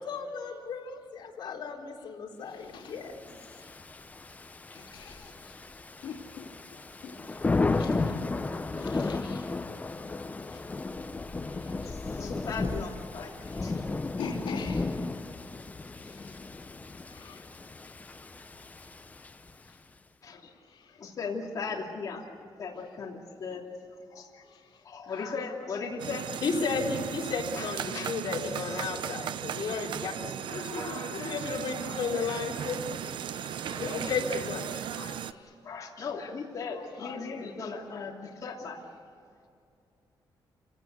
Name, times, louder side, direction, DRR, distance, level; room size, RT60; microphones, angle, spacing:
voice 1, 0.0-3.3 26.4-32.9 33.7-34.7, left 5 dB, 65° left, -1 dB, 3.9 m, -34 dB
Thunder / Rain, 3.1-19.7, left 3 dB, 20° left, 0.7 m, -34 dB
voice 2, 4.7-5.3 6.0-6.1 7.0-7.1 7.8-7.9 8.8-9.4 14.2-14.8 17.1-17.4, left 5 dB, 80° left, -1 dB, 3.0 m, -40 dB
voice 3, 12.0-13.8 14.3-14.4 20.2-20.5 20.9-22.2 22.6-23.6 24.1-24.4 24.8-26.3 27.6-28.2 28.6-28.9 30.1-31.4 31.8-32.4 33.4-34.4 34.9-35.2 35.6-38.8, left 5 dB, 40° left, -2 dB, 3.0 m, -38 dB
sound 1, 26.0-35.3, right 9 dB, 75° right, 0.8 m, -36 dB
28.5 x 17.5 x 8.3 m, 2.4 s
wide cardioid pair, 155°, 8 cm